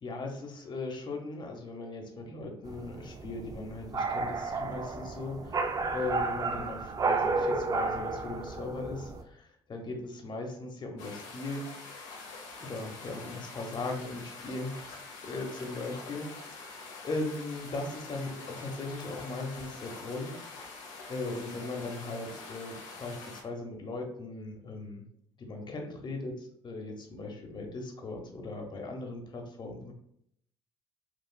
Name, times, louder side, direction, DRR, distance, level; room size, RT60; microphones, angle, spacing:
voice 1, 0.0-11.7 12.6-20.7 21.1-25.0 25.4-29.9, left 2 dB, 40° left, 2 dB, 0.9 m, -38 dB
sound 1, 2.6-9.2, right 3 dB, 30° right, 0.5 m, -32 dB
sound 2, 11.0-23.4, left 4 dB, 80° left, 0.8 m, -45 dB
4.5 x 2.4 x 2.3 m, 0.70 s
supercardioid pair, 70°, 12 cm